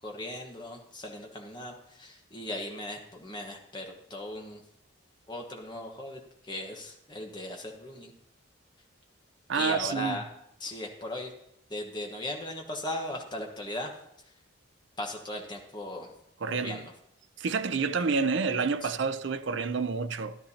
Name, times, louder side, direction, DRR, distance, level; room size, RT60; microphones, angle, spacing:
voice 1, 0.0-4.6 5.3-8.1 9.5-10.2 10.6-11.3 11.7-13.9 15.0-16.1 16.6-16.9 18.8-18.9, left 1 dB, 20° left, 1.3 m, -38 dB
voice 2, 9.5-10.2 16.4-16.9 17.4-20.4, right 5 dB, 60° right, 0.5 m, -29 dB
13.5 x 11.5 x 2.8 m
head